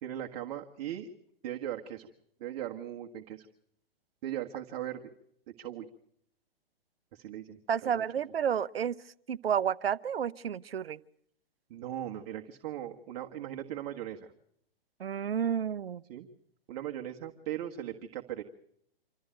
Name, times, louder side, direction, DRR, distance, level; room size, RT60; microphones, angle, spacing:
voice 1, 0.0-1.1 1.4-2.1 2.4-3.5 4.2-5.0 5.6-5.9 7.1-8.0 11.7-14.3 16.1-16.3 16.7-18.4, right 11 dB, 40° right, 1.6 m, -38 dB
voice 2, 7.7-9.0 9.3-11.0 15.0-16.0, right 8 dB, 75° right, 0.9 m, -30 dB
27.0 x 13.5 x 9.1 m
hypercardioid pair, 125°, 30 cm